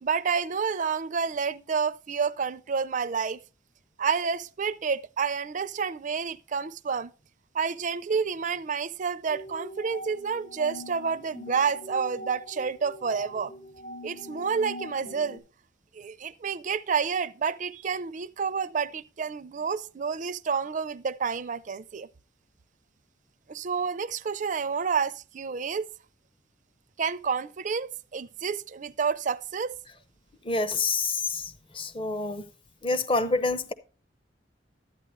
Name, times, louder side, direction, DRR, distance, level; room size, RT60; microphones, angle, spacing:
voice 1, 0.0-3.4 4.0-7.1 7.5-13.5 14.0-15.4 15.9-22.1 23.5-25.9 27.0-29.8, right 6 dB, 45° right, 0.5 m, -29 dB
sound 1, 9.3-15.4, equal, 85° left, 4.6 m, -43 dB
voice 2, 30.5-31.4 31.8-32.4 32.8-33.7, left 3 dB, 30° left, 0.8 m, -27 dB
12.5 x 9.3 x 3.1 m
head